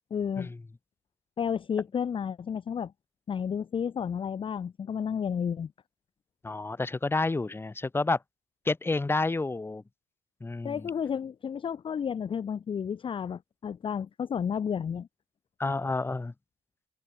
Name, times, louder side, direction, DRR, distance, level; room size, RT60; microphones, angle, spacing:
voice 1, 0.1-0.5 1.4-2.9 3.3-5.7 10.6-15.1, left 7 dB, 30° left, 0.6 m, -31 dB
voice 2, 6.4-8.2 8.7-9.8 10.4-10.9 15.6-16.3, left 3 dB, 15° left, 1.1 m, -29 dB
open air
cardioid pair, 110°, 17 cm